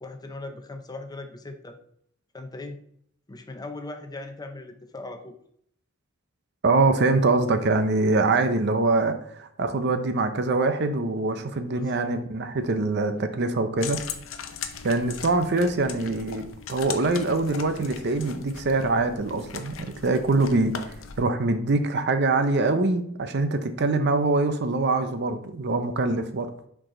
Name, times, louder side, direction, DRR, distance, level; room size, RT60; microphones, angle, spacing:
voice 1, 0.0-1.8 2.3-2.8 3.3-5.4 11.7-12.1, left 2 dB, 20° left, 6 dB, 0.6 m, -39 dB
voice 2, 6.6-14.0 14.8-26.5, right 3 dB, 55° right, 9 dB, 0.6 m, -24 dB
sound 1, 13.8-21.2, left 7 dB, 70° left, 0.6 m, -39 dB
6.3 x 4.8 x 3.8 m, 0.67 s
head